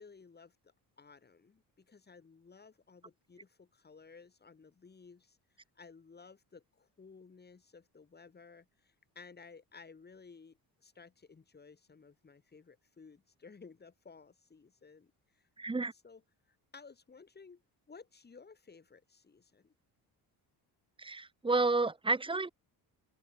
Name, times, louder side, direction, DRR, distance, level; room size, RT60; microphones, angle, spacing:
voice 1, 0.0-5.4 5.8-15.5 15.9-16.2 16.5-17.6 17.9-19.7, left 5 dB, 25° left, 5.8 m, -56 dB
voice 2, 15.6-15.9 21.0-22.5, right 3 dB, 15° right, 1.1 m, -30 dB
open air
cardioid pair, 135°, 38 cm